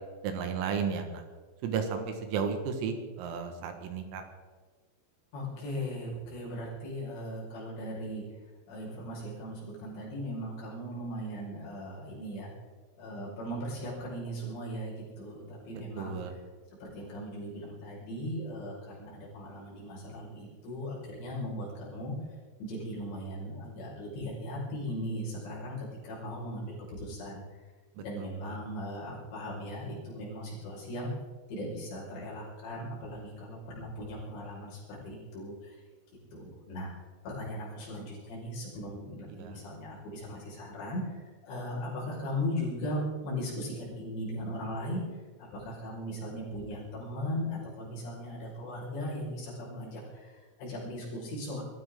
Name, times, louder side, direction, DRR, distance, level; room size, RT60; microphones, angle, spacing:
voice 1, 0.2-1.2 1.6-4.2 16.0-16.3 28.0-28.6 39.4-39.6, right 6 dB, 85° right, 6 dB, 4.4 m, -34 dB
voice 2, 5.3-8.2 8.7-12.5 13.0-16.2 16.8-22.1 22.6-27.4 28.0-31.1 31.5-35.8 36.3-36.9 37.2-45.0 45.4-51.6, equal, 60° left, -5 dB, 7.6 m, -38 dB
23.5 x 15.0 x 3.8 m, 1.4 s
omnidirectional pair, 5.9 m